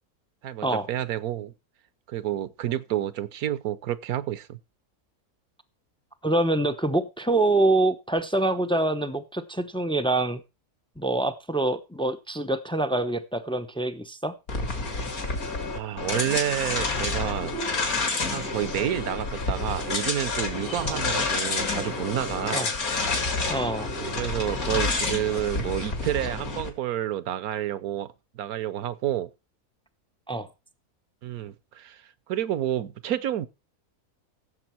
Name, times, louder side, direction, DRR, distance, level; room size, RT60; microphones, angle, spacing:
voice 1, 0.4-1.5 2.1-4.6 15.7-17.5 18.3-22.7 24.0-29.3 31.2-32.0 32.3-33.5, right 12 dB, 75° right, 1.2 m, -29 dB
voice 2, 6.2-10.4 11.0-14.3 20.8-21.0 22.5-22.7 23.5-23.9 30.3-30.5, right 2 dB, 10° left, 0.3 m, -25 dB
sound 1, 14.5-26.7, left 3 dB, 70° left, 2.6 m, -29 dB
16.0 x 7.1 x 4.4 m
omnidirectional pair, 1.6 m